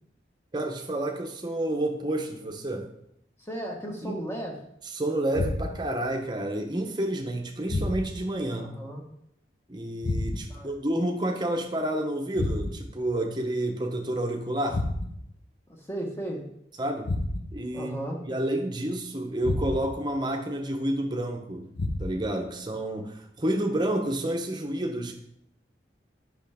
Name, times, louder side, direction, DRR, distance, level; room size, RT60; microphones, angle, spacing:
voice 1, 0.5-2.9 4.0-4.2 4.9-8.8 9.7-14.8 16.8-17.1 17.5-18.0 18.2-25.1, right 1 dB, 25° right, 3 dB, 0.9 m, -29 dB
voice 2, 3.4-4.6 8.6-9.0 10.5-10.7 15.8-16.5 17.7-18.2, right 1 dB, 15° left, 0 dB, 1.2 m, -35 dB
sound 1, 5.3-6.0 7.7-8.3 10.0-10.7 12.4-13.0 14.7-15.3 17.0-17.7 19.4-20.1 21.8-22.4, left 2 dB, 80° left, 1.0 m, -30 dB
8.1 x 5.7 x 3.5 m, 0.75 s
head